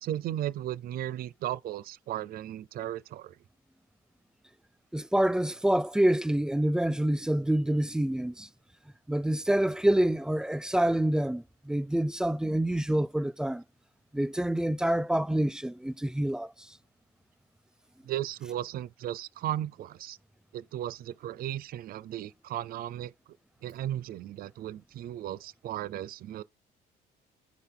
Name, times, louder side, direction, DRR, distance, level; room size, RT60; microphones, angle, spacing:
voice 1, 0.0-3.4 18.0-20.2 20.5-23.1 23.6-26.4, right 12 dB, 60° right, 0.6 m, -35 dB
voice 2, 4.9-8.5 9.1-13.6 14.1-16.5, right 1 dB, 5° right, 0.3 m, -27 dB
9.8 x 4.0 x 3.5 m
cardioid pair, 110°, 17 cm